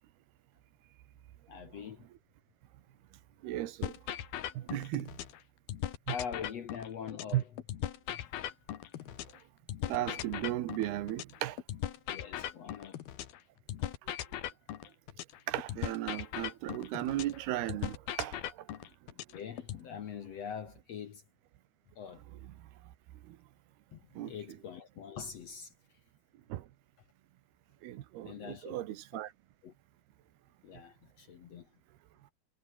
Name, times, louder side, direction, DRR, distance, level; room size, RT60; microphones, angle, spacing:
voice 1, 1.5-2.1 6.1-7.5 8.1-8.3 9.0-9.2 12.1-13.0 13.8-13.9 19.1-21.2 22.0-22.2 23.9-25.7 28.2-28.8 29.1-29.2 29.6-29.7 30.6-31.7, left 7 dB, 60° left, 1.9 m, -44 dB
voice 2, 3.4-3.9 4.6-5.1 7.3-7.4 9.9-11.6 15.5-18.4 24.2-24.3 26.5-26.6 27.8-29.3, right 14 dB, 85° right, 3.3 m, -35 dB
sound 1, 3.8-5.4 5.7-9.4 9.7-13.4 13.7-17.4 17.7-19.8, left 12 dB, 75° left, 3.5 m, -39 dB
omnidirectional pair, 4.5 m